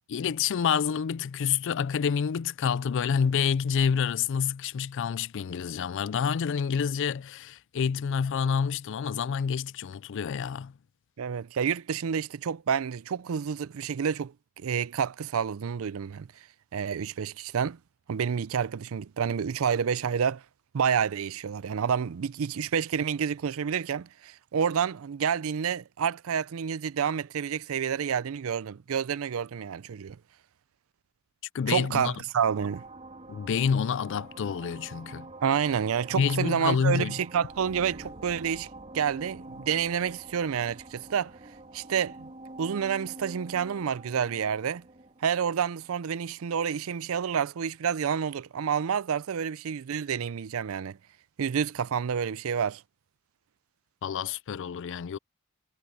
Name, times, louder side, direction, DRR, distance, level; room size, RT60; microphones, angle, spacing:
voice 1, 0.1-10.7 31.5-32.1 33.3-35.3 36.1-37.2 54.0-55.2, left 7 dB, 60° left, 0.4 m, -28 dB
voice 2, 11.2-16.3 16.7-17.8 18.1-20.4 20.7-30.2 31.7-32.8 35.4-38.7 38.9-41.3 41.7-42.3 42.6-44.8 45.2-51.0 51.4-52.8, right 7 dB, 70° right, 0.4 m, -29 dB
sound 1, 32.4-46.6, right 2 dB, 30° right, 2.4 m, -46 dB
head